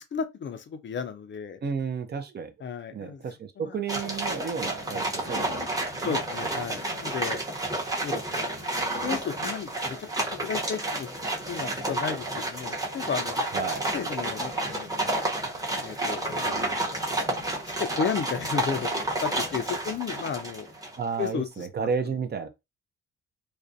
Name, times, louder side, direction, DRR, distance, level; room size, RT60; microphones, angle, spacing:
voice 1, 0.0-1.6 2.6-3.2 3.6-3.8 4.9-5.0 6.0-7.4 8.0-8.5 9.0-10.0 10.3-11.2 11.5-13.3 13.7-15.2 15.8-16.6 17.3-17.4 17.8-18.9 19.2-20.7 21.2-21.7 22.0-22.1, left 7 dB, 40° left, 0.4 m, -33 dB
voice 2, 1.6-2.5 2.9-6.8 13.5-13.8 21.0-22.5, right 6 dB, 35° right, 0.4 m, -32 dB
sound 1, 3.9-21.0, right 1 dB, 10° right, 0.8 m, -30 dB
2.4 x 2.1 x 2.5 m
cardioid pair, 90°, 30 cm